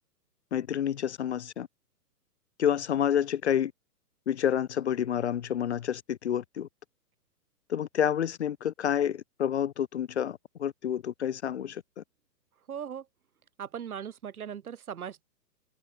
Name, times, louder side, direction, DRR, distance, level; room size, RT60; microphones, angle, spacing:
voice 1, 0.5-1.7 2.6-3.7 4.3-6.7 7.7-12.0, left 9 dB, 45° left, 1.2 m, -29 dB
voice 2, 12.7-13.1 13.6-15.2, right 8 dB, 60° right, 5.0 m, -38 dB
open air
hypercardioid pair, 175°, 48 cm